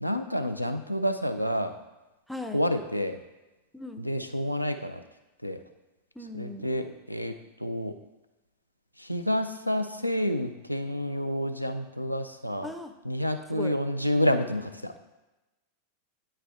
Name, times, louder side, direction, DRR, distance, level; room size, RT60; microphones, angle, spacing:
voice 1, 0.0-1.8 2.5-3.2 4.0-5.0 5.4-5.6 6.3-7.3 7.6-7.9 9.0-12.7 13.0-14.9, equal, 90° left, 7 dB, 0.4 m, -29 dB
voice 2, 2.3-2.6 3.7-4.1 6.2-6.7 12.6-12.9 13.5-13.7, left 2 dB, ahead, 7 dB, 0.5 m, -38 dB
8.5 x 3.3 x 3.4 m, 1.1 s
figure-of-eight pair, 90°, 0 cm